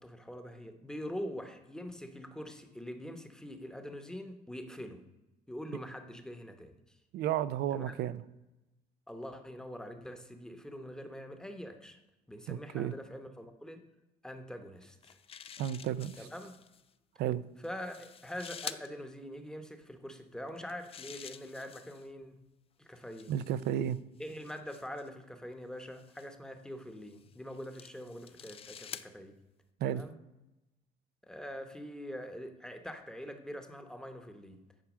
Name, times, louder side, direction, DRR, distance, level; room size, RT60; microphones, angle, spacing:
voice 1, 0.0-5.0 5.5-7.0 7.7-7.9 9.1-12.0 12.3-13.8 14.2-15.2 16.2-16.5 17.6-22.4 22.8-23.3 24.2-29.4 29.8-30.2 31.3-34.6, equal, 5° left, 7 dB, 1.0 m, -44 dB
voice 2, 7.1-8.2 12.5-12.9 15.6-16.1 17.2-17.4 23.3-24.0 29.8-30.0, right 11 dB, 75° right, 16 dB, 0.5 m, -32 dB
sound 1, 14.8-16.8 17.6-18.9 20.5-22.1 23.0-25.1 25.9-26.3 27.1-29.1, left 8 dB, 35° left, 0.4 m, -48 dB
9.1 x 4.7 x 6.2 m, 0.98 s
cardioid pair, 110°, 17 cm